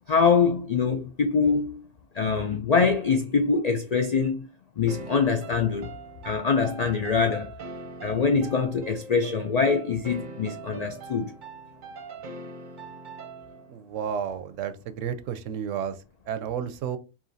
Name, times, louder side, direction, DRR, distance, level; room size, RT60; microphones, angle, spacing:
voice 1, 0.1-1.8 2.1-4.5 4.8-5.9 6.2-7.5 8.0-11.3, left 5 dB, 70° left, 0.3 m, -24 dB
sound 1, 4.9-13.8, right 3 dB, 45° right, 0.7 m, -42 dB
voice 2, 13.7-17.0, right 8 dB, 75° right, 0.9 m, -32 dB
4.9 x 2.9 x 2.7 m
omnidirectional pair, 1.3 m